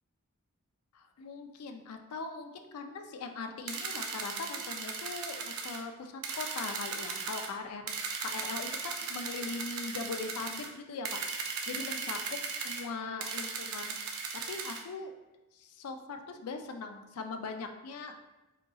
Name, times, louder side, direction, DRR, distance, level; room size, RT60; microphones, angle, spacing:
voice 1, 0.9-7.9 8.2-14.2 14.5-15.1 15.5-18.2, left 4 dB, 85° left, 6 dB, 0.5 m, -41 dB
sound 1, 3.7-5.8 6.2-7.5 7.9-10.7 11.0-12.8 13.2-14.8, right 5 dB, 80° right, 0.6 m, -37 dB
5.1 x 3.9 x 2.3 m, 1.0 s
head